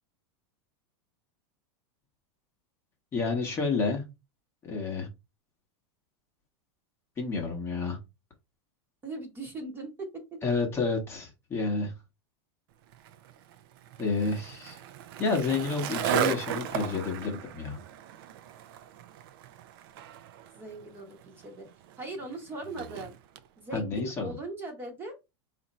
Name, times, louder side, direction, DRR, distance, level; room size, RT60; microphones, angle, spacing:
voice 1, 3.1-4.0 4.6-5.1 7.2-8.0 10.4-11.9 14.0-14.8 15.2-17.8 23.7-24.3, left 4 dB, 15° left, 1 dB, 0.9 m, -30 dB
voice 2, 9.0-10.2 20.5-21.7 22.0-23.1 23.6-25.2, right 2 dB, 15° right, 2 dB, 1.0 m, -39 dB
Skateboard, 12.9-23.5, right 10 dB, 55° right, 0.5 m, -36 dB
4.2 x 2.6 x 4.1 m, 0.24 s
supercardioid pair, 160°, 14 cm